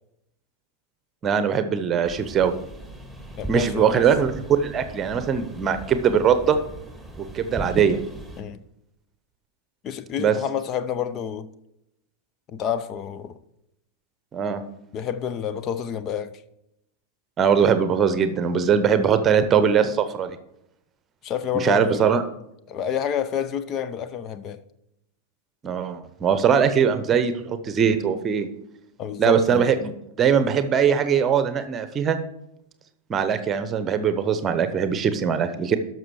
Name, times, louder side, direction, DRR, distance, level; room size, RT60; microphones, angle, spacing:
voice 1, 1.2-2.5 3.5-6.6 7.2-8.0 10.2-10.3 14.3-14.6 17.4-20.4 21.5-22.2 25.6-28.5 29.2-29.9 30.2-32.2 33.1-35.8, right 7 dB, 25° right, 0.9 m, -21 dB
sound 1, 2.0-8.4, right 1 dB, 5° left, 1.9 m, -39 dB
voice 2, 3.4-4.0 8.4-8.6 9.8-11.5 12.5-13.4 14.9-16.4 21.2-22.0 22.7-24.6 29.0-29.6, left 8 dB, 35° left, 0.6 m, -29 dB
12.5 x 6.2 x 4.8 m
figure-of-eight pair, 90°, 0 cm